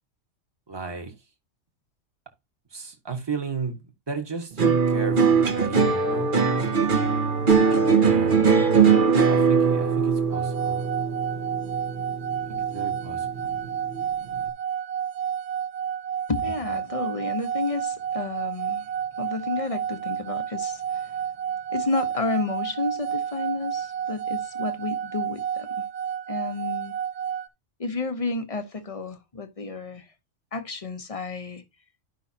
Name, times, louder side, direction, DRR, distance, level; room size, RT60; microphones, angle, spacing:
voice 1, 0.7-1.1 2.7-6.3 8.0-8.5 9.3-10.8 12.5-13.6, right 4 dB, 20° right, 1.5 m, -34 dB
sound 1, 4.6-13.0 13.4-14.0, right 5 dB, 45° right, 1.3 m, -21 dB
sound 2, 10.3-27.5, right 8 dB, 65° right, 1.1 m, -30 dB
voice 2, 16.3-18.9 19.2-21.1 21.7-25.7 26.3-26.9 27.8-30.1 30.5-31.6, left 3 dB, 30° left, 1.0 m, -31 dB
12.0 x 5.6 x 2.8 m
omnidirectional pair, 1.3 m